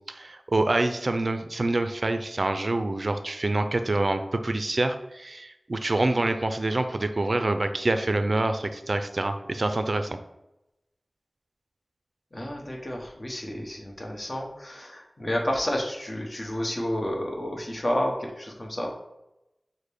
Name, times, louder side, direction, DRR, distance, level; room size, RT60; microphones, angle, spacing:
voice 1, 0.1-10.2, right 2 dB, 60° right, 8 dB, 0.3 m, -26 dB
voice 2, 12.3-19.0, left 1 dB, 45° left, 0 dB, 0.9 m, -30 dB
6.3 x 2.1 x 3.4 m, 0.90 s
wide cardioid pair, 50°, 0 cm